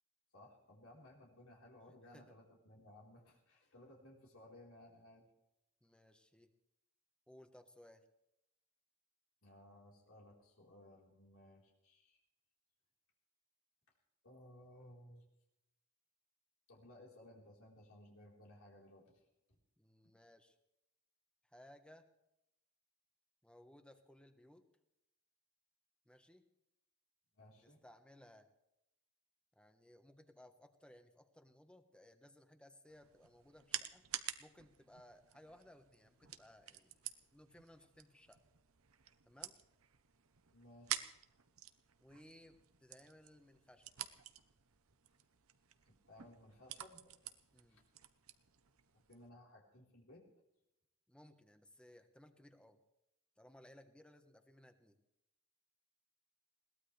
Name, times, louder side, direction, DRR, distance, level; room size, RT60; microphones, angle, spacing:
voice 1, 0.3-5.2 9.4-12.2 14.2-15.2 16.7-19.2 27.3-27.8 40.5-41.1 45.9-47.0 47.7-47.9 49.1-50.2, left 1 dB, 75° left, -2 dB, 4.2 m, -60 dB
voice 2, 1.9-2.4 5.8-6.5 7.3-8.1 19.8-20.5 21.5-22.1 23.4-24.6 26.0-26.4 27.6-28.5 29.5-34.0 34.4-37.0 37.3-38.4 39.2-39.6 42.0-43.9 47.5-47.8 51.1-52.8 53.4-55.0, left 1 dB, 5° left, 7 dB, 1.3 m, -62 dB
sound 1, 32.9-49.3, right 11 dB, 80° right, 1.0 m, -50 dB
21.5 x 18.0 x 3.4 m, 0.86 s
head